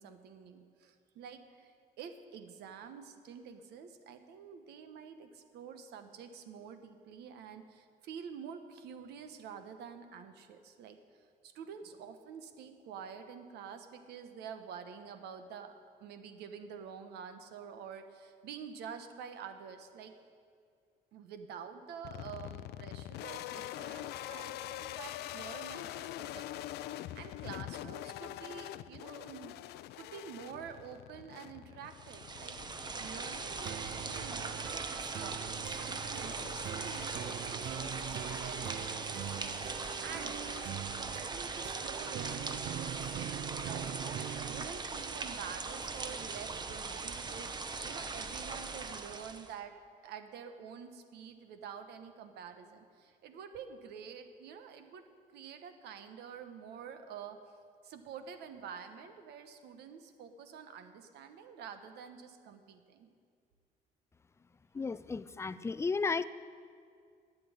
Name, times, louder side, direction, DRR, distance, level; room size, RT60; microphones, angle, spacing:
voice 1, 0.0-11.0 11.4-15.7 16.0-20.1 21.1-29.6 30.0-40.4 41.0-49.8 50.0-55.1 55.3-57.4 57.8-63.1, right 7 dB, 75° right, 8 dB, 1.1 m, -48 dB
sound 1, 22.0-41.2, left 14 dB, 75° left, 0.4 m, -46 dB
sound 2, 31.9-49.5, right 4 dB, 25° right, 0.8 m, -40 dB
sound 3, 33.7-44.7, right 11 dB, 60° right, 0.4 m, -43 dB
voice 2, 64.7-66.2, left 4 dB, 15° left, 15 dB, 0.4 m, -33 dB
11.0 x 7.8 x 9.9 m, 2.2 s
cardioid pair, 110°, 17 cm